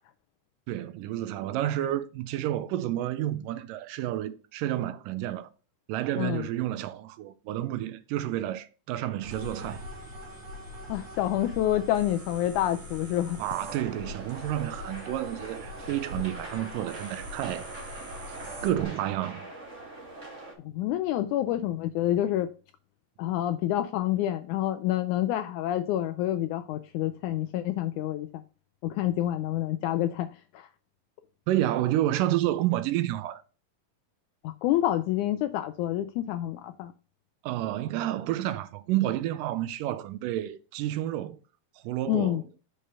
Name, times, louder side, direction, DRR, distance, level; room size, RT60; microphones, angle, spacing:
voice 1, 0.7-5.5 5.9-9.8 13.4-17.6 18.6-19.5 31.5-33.4 37.4-41.4 41.8-42.4, right 13 dB, 80° right, 2.2 m, -30 dB
voice 2, 6.2-6.5 10.9-13.4 20.6-22.5 23.2-28.4 28.8-30.3 30.5-30.7 34.4-36.9 42.1-42.4, left 13 dB, 85° left, 1.8 m, -28 dB
sound 1, 9.2-18.9, left 1 dB, 55° right, 3.3 m, -42 dB
sound 2, 13.6-20.5, right 2 dB, 35° right, 1.2 m, -43 dB
6.7 x 5.0 x 4.2 m
omnidirectional pair, 3.9 m